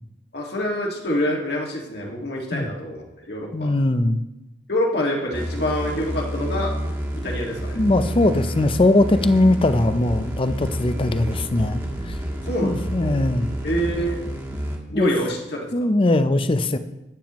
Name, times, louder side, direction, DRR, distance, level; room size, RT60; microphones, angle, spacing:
voice 1, 0.3-3.7 4.7-6.7 7.2-7.8 12.4-13.2 13.6-14.2 14.9-15.7, equal, 60° left, -1 dB, 1.9 m, -26 dB
voice 2, 3.5-4.2 7.7-11.8 12.1-12.2 12.6-13.5 14.9-15.1 15.7-16.8, left 2 dB, 30° left, 11 dB, 0.5 m, -20 dB
sound 1, 5.3-14.8, equal, 15° right, 1.6 m, -29 dB
12.0 x 9.0 x 3.0 m, 0.94 s
head